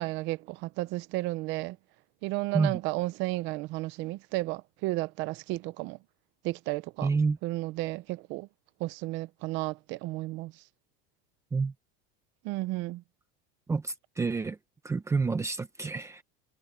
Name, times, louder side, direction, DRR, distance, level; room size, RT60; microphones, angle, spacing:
voice 1, 0.0-1.8 2.2-6.0 6.4-7.1 7.4-8.5 8.8-10.5 12.4-13.0, right 19 dB, 35° right, 0.7 m, -33 dB
voice 2, 7.0-7.4 11.5-11.7 13.7-14.6 14.8-16.2, right 4 dB, 10° right, 1.0 m, -28 dB
supercardioid pair, 170°, 31 cm